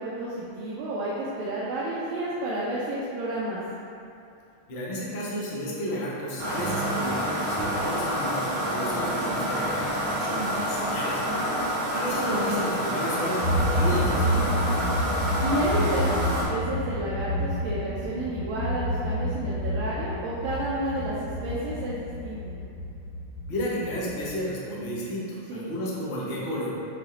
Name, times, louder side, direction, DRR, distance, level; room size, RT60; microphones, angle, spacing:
voice 1, 0.0-3.6 11.3-11.6 15.4-22.5 25.5-25.6, right 1 dB, 80° right, -8 dB, 1.4 m, -31 dB
voice 2, 4.7-11.2 11.9-15.0 23.5-26.8, equal, 80° left, -6 dB, 0.5 m, -32 dB
sound 1, 6.4-16.4, equal, 35° right, 1.2 m, -28 dB
sound 2, 13.4-24.4, equal, 55° right, 1.0 m, -29 dB
6.1 x 2.1 x 3.7 m, 2.6 s
omnidirectional pair, 2.3 m